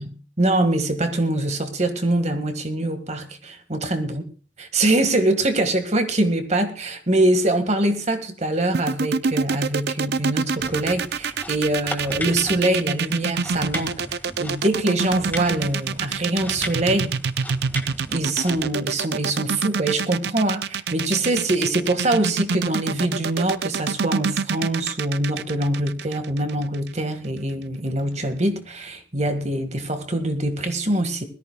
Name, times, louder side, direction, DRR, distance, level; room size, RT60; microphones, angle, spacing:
voice 1, 0.0-4.2 4.6-14.0 14.4-17.2 18.1-31.3, right 1 dB, 35° right, 1.7 m, -23 dB
sound 1, 8.7-26.9, right 5 dB, 60° right, 0.5 m, -26 dB
sound 2, 10.6-18.7, left 1 dB, 10° left, 1.7 m, -37 dB
21.0 x 13.5 x 2.3 m
head